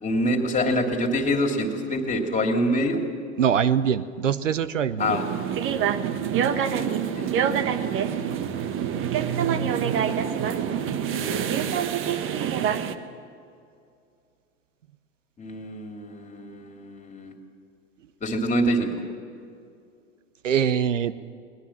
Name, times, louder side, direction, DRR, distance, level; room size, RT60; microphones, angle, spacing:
voice 1, 0.0-3.0 5.0-5.2 6.5-7.7 11.1-11.7 15.4-17.3 18.2-18.9, equal, 20° left, 3 dB, 3.0 m, -26 dB
voice 2, 3.4-5.2 20.4-21.1, right 8 dB, 90° right, 16 dB, 0.8 m, -23 dB
sound 1, 5.0-12.9, right 8 dB, 35° right, 1.2 m, -26 dB
22.5 x 20.0 x 7.3 m, 2.4 s
hypercardioid pair, 100°, 36 cm